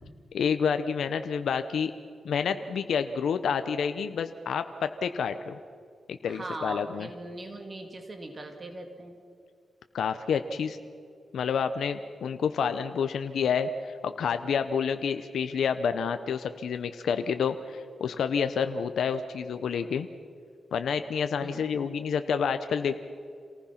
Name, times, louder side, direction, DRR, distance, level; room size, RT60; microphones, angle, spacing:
voice 1, 0.3-1.9 2.2-5.6 6.1-7.1 9.9-10.8 11.3-20.1 20.7-23.0, left 6 dB, 80° left, 9 dB, 0.8 m, -29 dB
voice 2, 6.3-9.2 21.4-21.9, right 2 dB, 35° right, 5 dB, 2.3 m, -40 dB
27.5 x 19.0 x 5.9 m, 2.3 s
cardioid pair, 90°, 0 cm